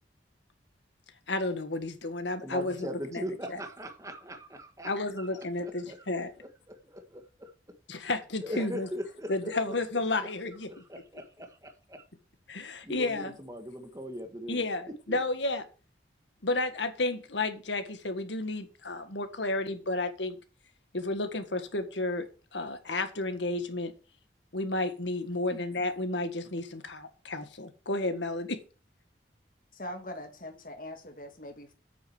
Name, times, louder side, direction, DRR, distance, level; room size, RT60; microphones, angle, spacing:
voice 1, 1.3-3.2 3.5-3.6 4.8-6.3 7.9-8.9 9.3-10.7 12.5-13.4 14.5-15.6 16.4-20.4 20.9-23.9 24.5-28.6, left 2 dB, 80° left, 1.8 m, -32 dB
voice 2, 2.4-4.9 5.2-5.3 5.6-6.1 6.7-7.5 8.4-9.7 10.7-12.0 12.8-14.6 15.1-15.2, equal, 20° right, 1.5 m, -40 dB
voice 3, 29.7-31.7, left 1 dB, 50° left, 2.3 m, -42 dB
8.7 x 6.4 x 7.2 m
head